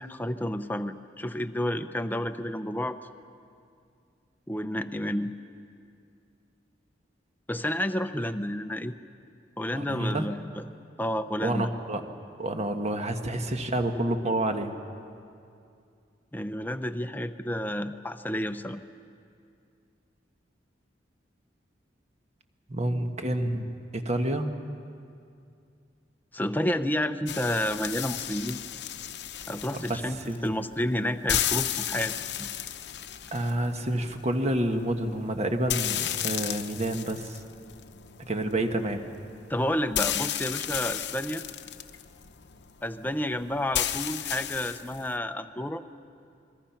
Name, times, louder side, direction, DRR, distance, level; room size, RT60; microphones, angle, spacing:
voice 1, 0.0-3.0 4.5-5.3 7.5-8.9 9.6-10.6 11.0-11.7 16.3-18.8 26.3-28.6 29.5-32.5 39.5-41.4 42.8-45.8, left 1 dB, 10° left, 8 dB, 0.7 m, -30 dB
voice 2, 9.7-10.3 11.4-12.0 12.4-14.7 22.7-24.5 29.9-30.0 30.2-30.4 33.3-37.4 38.3-39.0, right 1 dB, 40° right, 6 dB, 1.4 m, -28 dB
sound 1, 27.3-45.2, left 11 dB, 65° left, 0.9 m, -34 dB
28.0 x 21.5 x 5.9 m, 2.4 s
head